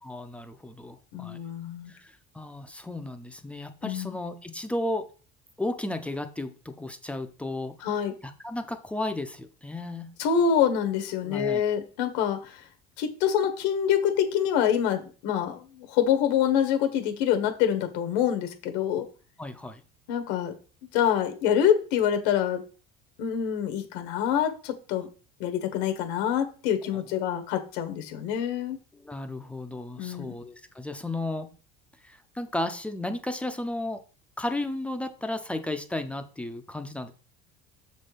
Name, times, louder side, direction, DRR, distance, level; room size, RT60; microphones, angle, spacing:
voice 1, 0.0-1.4 1.9-5.1 5.6-7.9 8.2-10.1 11.2-11.6 19.0-19.1 19.4-19.8 26.9-27.0 28.9-31.5 32.0-34.0 34.4-37.1, left 1 dB, 5° left, 8 dB, 0.6 m, -34 dB
voice 2, 1.1-1.9 3.8-4.2 7.8-8.1 10.2-12.5 13.0-19.0 20.1-20.5 20.9-22.6 23.2-25.1 25.4-28.8 30.0-30.3, left 9 dB, 85° left, 7 dB, 1.4 m, -26 dB
7.0 x 4.3 x 5.0 m, 0.37 s
cardioid pair, 145°, 21 cm